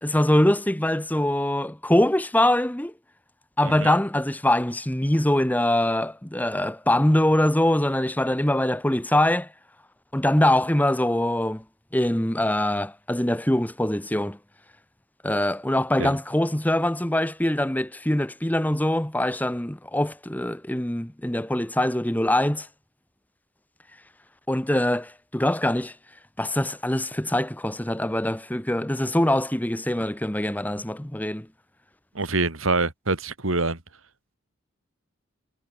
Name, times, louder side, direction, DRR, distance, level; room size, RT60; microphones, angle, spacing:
voice 1, 0.0-2.9 3.6-9.5 10.1-11.6 11.9-14.4 15.2-22.7 24.5-25.9 26.4-31.5, left 1 dB, 10° left, 1.0 m, -23 dB
voice 2, 32.1-33.8, right 3 dB, 80° right, 2.9 m, -25 dB
head